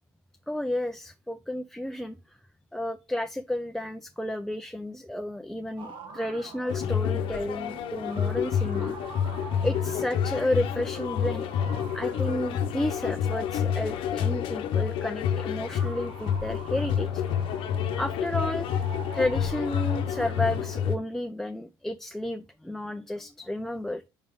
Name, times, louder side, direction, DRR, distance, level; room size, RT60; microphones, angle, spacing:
voice 1, 0.5-2.4 2.7-9.0 9.6-11.5 11.9-17.2 17.9-18.9 19.1-24.1, left 1 dB, 5° left, 0.5 m, -32 dB
sound 1, 5.8-21.0, right 3 dB, 60° right, 1.8 m, -46 dB
sound 2, 6.7-20.9, left 8 dB, 70° left, 0.8 m, -29 dB
5.4 x 3.4 x 5.4 m
cardioid pair, 95°, 9 cm